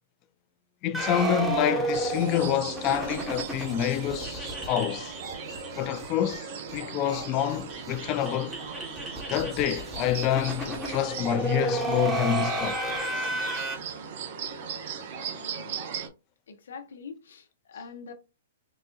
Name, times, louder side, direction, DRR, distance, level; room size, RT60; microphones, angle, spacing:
voice 1, 0.8-5.1 5.8-8.6 9.3-12.8, left 10 dB, 35° left, 0.5 m, -27 dB
sound 1, 0.9-6.0 6.3-6.4 6.7-6.8 7.1-13.8, right 2 dB, 10° right, 1.1 m, -32 dB
sound 2, 1.9-16.1, right 6 dB, 55° right, 0.9 m, -38 dB
voice 2, 15.3-15.8 16.5-18.1, left 5 dB, 75° left, 0.8 m, -44 dB
4.0 x 2.5 x 2.3 m
hypercardioid pair, 125°, 0 cm